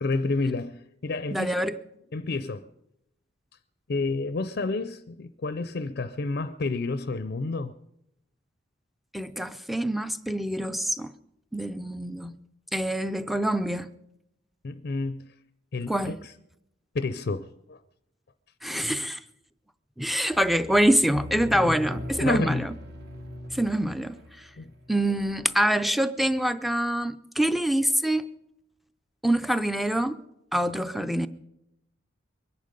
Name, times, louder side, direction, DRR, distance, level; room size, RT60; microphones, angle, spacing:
voice 1, 0.0-1.5 2.1-2.7 3.9-7.7 14.6-15.3 15.7-16.3 16.9-17.8 21.6-21.8 22.2-22.7 24.6-24.7, left 3 dB, 50° left, 0.5 m, -30 dB
voice 2, 1.3-1.8 9.1-11.1 11.5-12.4 12.7-13.9 15.9-16.2 18.6-19.2 20.0-22.7 23.5-24.5 24.9-28.3 29.2-30.2 30.5-31.3, right 1 dB, ahead, 0.5 m, -25 dB
sound 1, 20.3-25.3, equal, 55° right, 2.0 m, -39 dB
23.0 x 10.5 x 5.2 m
head